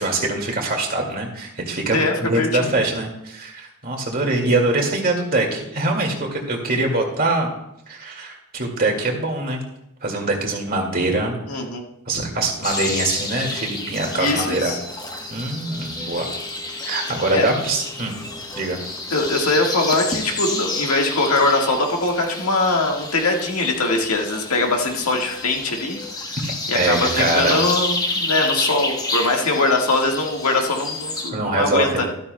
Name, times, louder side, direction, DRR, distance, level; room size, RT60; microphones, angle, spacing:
voice 1, 0.0-7.5 7.9-9.6 10.0-11.3 12.1-14.8 15.3-16.3 16.8-18.2 18.6-18.8 26.4-27.7 31.3-32.1, right 2 dB, 40° right, 2 dB, 2.1 m, -23 dB
voice 2, 1.9-2.7 11.5-11.8 14.1-14.8 17.3-17.5 19.1-26.0 26.7-32.1, left 2 dB, 85° left, 1 dB, 1.6 m, -21 dB
sound 1, 12.6-31.3, left 2 dB, 15° left, 1.0 m, -29 dB
13.0 x 12.5 x 2.2 m, 0.82 s
head